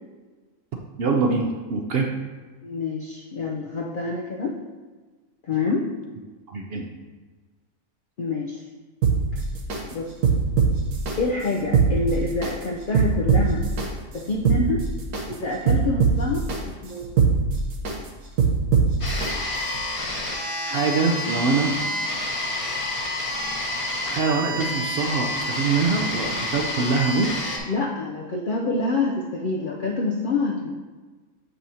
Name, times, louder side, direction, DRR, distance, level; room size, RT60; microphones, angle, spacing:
voice 1, 1.0-2.1 6.5-6.8 20.6-21.7 24.0-27.3, right 4 dB, 60° right, 1 dB, 0.6 m, -24 dB
voice 2, 2.6-4.5 5.5-5.9 8.2-8.6 9.9-10.1 11.2-13.7 14.1-14.8 15.3-17.1 27.7-30.8, left 3 dB, 70° left, -1 dB, 0.4 m, -26 dB
sound 1, 9.0-9.8 10.2-11.1 11.6-12.5 12.9-13.9 14.3-15.2 15.7-16.6 17.0-17.9 18.4-19.3 19.7-19.8, right 5 dB, 85° right, 1.4 m, -21 dB
sound 2, 19.0-27.6, left 1 dB, 30° left, 0.7 m, -29 dB
7.5 x 5.5 x 2.8 m, 1.4 s
omnidirectional pair, 1.5 m